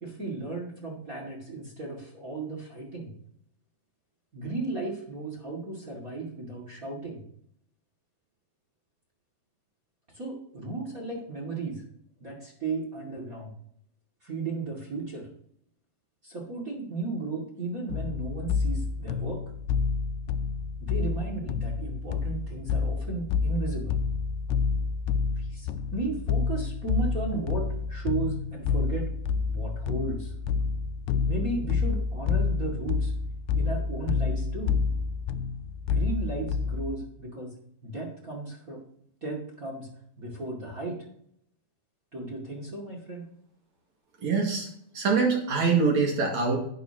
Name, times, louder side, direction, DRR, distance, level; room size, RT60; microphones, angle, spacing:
voice 1, 0.0-3.1 4.3-7.2 10.1-11.8 12.2-13.5 14.2-15.3 16.2-19.4 20.8-24.0 25.4-29.1 29.5-30.3 31.2-33.1 33.5-34.8 35.9-37.5 37.8-38.8 39.2-39.9 40.2-41.0 42.1-43.3, right 3 dB, 25° right, 0 dB, 2.1 m, -35 dB
sound 1, 17.9-37.0, left 5 dB, 85° left, 2.5 m, -29 dB
voice 2, 44.2-44.7 44.9-46.6, right 4 dB, 50° right, 0 dB, 3.0 m, -24 dB
11.0 x 10.5 x 2.9 m, 0.67 s
omnidirectional pair, 4.5 m